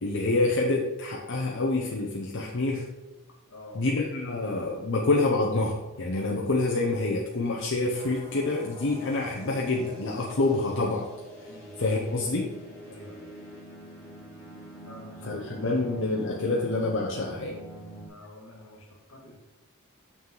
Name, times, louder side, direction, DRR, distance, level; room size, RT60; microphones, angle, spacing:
voice 1, 0.0-2.9 3.7-11.1 11.8-12.6 15.2-17.6, left 2 dB, 60° left, -2 dB, 0.8 m, -27 dB
voice 2, 3.5-3.8 11.5-11.7 12.9-13.3 14.8-15.8 16.3-16.4 18.0-19.4, left 1 dB, 80° left, 0 dB, 2.0 m, -48 dB
sound 1, 7.9-18.1, right 1 dB, 15° left, 2.1 m, -45 dB
7.3 x 5.7 x 3.9 m, 1.1 s
head